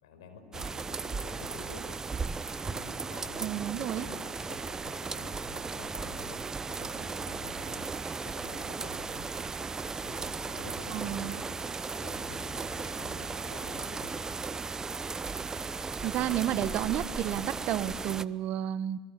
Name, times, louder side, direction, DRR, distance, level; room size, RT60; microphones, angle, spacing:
voice 1, 0.0-1.8 2.6-6.4 6.7-7.9 8.2-9.3 10.0-14.1, left 5 dB, 80° left, 6 dB, 5.1 m, -49 dB
sound 1, 0.5-18.2, right 4 dB, 20° right, 0.8 m, -36 dB
voice 2, 3.4-4.1 10.9-11.3 16.0-19.0, right 12 dB, 55° right, 15 dB, 1.1 m, -31 dB
26.0 x 21.5 x 8.4 m, 1.5 s
hypercardioid pair, 80°, 3 cm